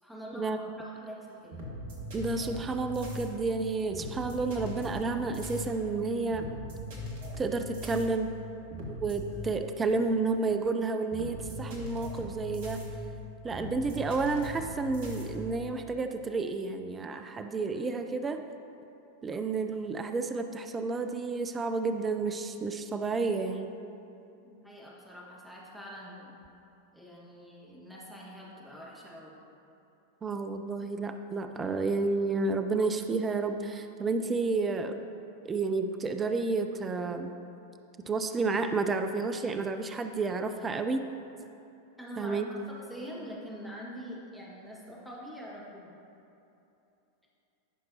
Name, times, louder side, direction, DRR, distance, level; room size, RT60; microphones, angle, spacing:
voice 1, 0.0-1.6 24.4-26.3 26.9-29.4 42.0-42.4 42.9-45.9, equal, ahead, -5 dB, 1.8 m, -44 dB
sound 1, 1.3-15.9, left 1 dB, 50° right, 1.6 m, -40 dB
voice 2, 2.1-6.5 7.4-8.4 8.9-12.8 13.4-18.4 19.2-23.7 30.2-35.1 35.4-37.3 38.0-41.1 42.2-42.4, right 3 dB, 20° right, 7 dB, 0.4 m, -31 dB
14.5 x 5.9 x 2.8 m, 2.8 s
figure-of-eight pair, 90°, 0 cm